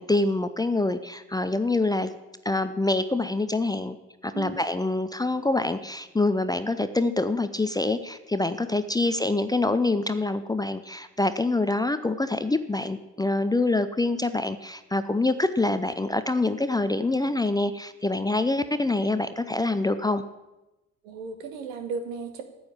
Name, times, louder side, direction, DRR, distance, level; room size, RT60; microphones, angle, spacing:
voice 1, 0.0-2.1 2.4-4.0 4.2-20.2, left 2 dB, 10° left, 11 dB, 0.6 m, -25 dB
voice 2, 21.0-22.4, right 5 dB, 70° right, 7 dB, 1.4 m, -35 dB
9.5 x 7.9 x 8.8 m, 1.0 s
figure-of-eight pair, 50°, 41 cm